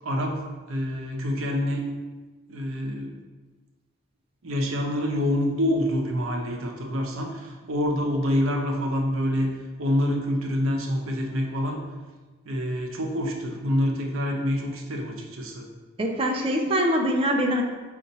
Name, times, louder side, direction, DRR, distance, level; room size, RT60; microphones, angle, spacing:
voice 1, 0.0-1.8 2.5-3.2 4.4-9.5 9.8-11.8 12.4-15.7, equal, 80° right, 1 dB, 0.7 m, -26 dB
voice 2, 16.0-17.6, equal, 25° right, 2 dB, 0.4 m, -23 dB
5.2 x 2.5 x 4.0 m, 1.3 s
head